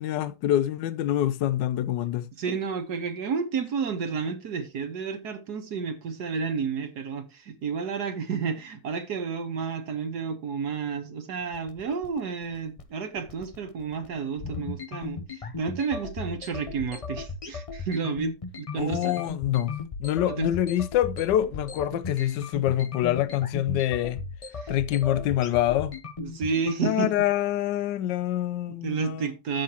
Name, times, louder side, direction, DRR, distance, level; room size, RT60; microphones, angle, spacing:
voice 1, 0.0-2.3 18.8-19.7 20.0-24.2 24.7-26.0 26.8-29.3, left 12 dB, 85° left, 1.3 m, -26 dB
voice 2, 2.3-15.2 15.6-19.1 20.2-20.5 24.6-24.7 26.2-27.1 28.7-29.6, right 5 dB, 65° right, 1.5 m, -31 dB
sound 1, 11.4-26.7, left 4 dB, 55° left, 0.3 m, -37 dB
10.5 x 7.7 x 2.9 m
omnidirectional pair, 1.9 m